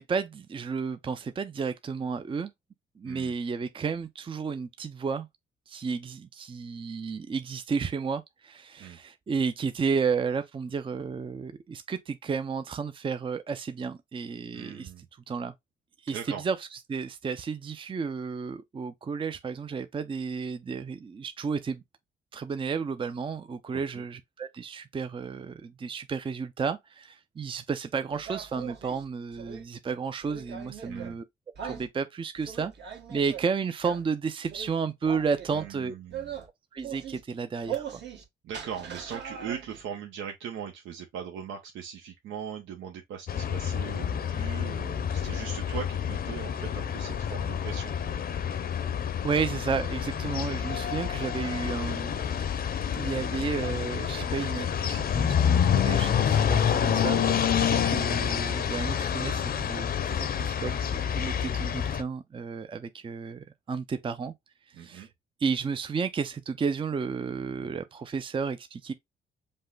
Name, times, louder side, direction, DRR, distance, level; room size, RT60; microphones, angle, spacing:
voice 1, 0.0-2.5 3.0-5.3 5.7-14.9 15.3-15.5 16.0-16.6 16.9-21.8 22.3-31.2 31.6-32.7 33.1-35.9 36.7-38.0 49.2-52.2 52.9-64.3 64.8-65.1 65.4-68.9, right 5 dB, 25° right, 0.5 m, -32 dB
voice 2, 14.5-15.0 16.1-16.4 23.7-23.8 30.8-31.2 35.5-36.3 38.4-48.1 64.7-65.1, right 8 dB, 80° right, 0.9 m, -40 dB
sound 1, 28.1-29.6 30.2-31.1 31.5-31.9 32.4-33.4 33.8-34.0 34.4-34.7 35.0-35.7 36.1-36.5 36.8-37.2 37.6-38.2 38.5-39.8, right 8 dB, 60° right, 1.5 m, -40 dB
sound 2, 43.3-62.0, left 8 dB, 50° left, 0.7 m, -28 dB
5.4 x 2.2 x 3.8 m
cardioid pair, 90°, 20 cm